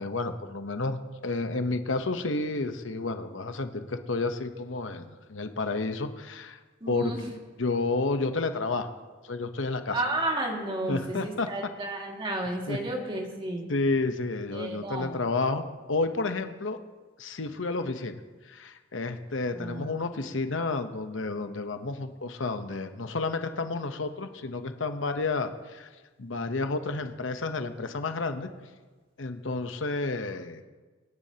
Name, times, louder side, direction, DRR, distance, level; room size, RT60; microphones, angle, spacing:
voice 1, 0.0-6.6 6.9-7.1 7.6-9.0 9.2-10.0 10.9-11.5 12.7-12.8 13.7-16.8 17.2-25.9 26.2-28.5 29.2-30.6, left 3 dB, 85° left, 8 dB, 0.9 m, -31 dB
voice 2, 6.8-7.3 9.9-13.6 14.5-15.2 19.5-20.3, right 1 dB, 25° right, -1 dB, 2.1 m, -32 dB
24.5 x 10.5 x 2.9 m, 1.3 s
head